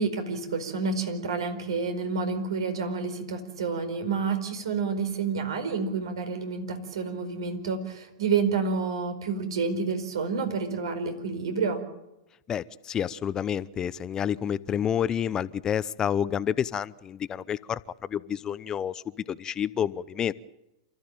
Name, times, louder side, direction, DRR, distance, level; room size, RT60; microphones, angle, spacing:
voice 1, 0.0-11.8, right 5 dB, 75° right, 7 dB, 4.7 m, -29 dB
voice 2, 12.5-20.3, left 9 dB, 25° left, 17 dB, 0.7 m, -29 dB
28.5 x 14.0 x 8.9 m, 0.93 s
hypercardioid pair, 105°, 3 cm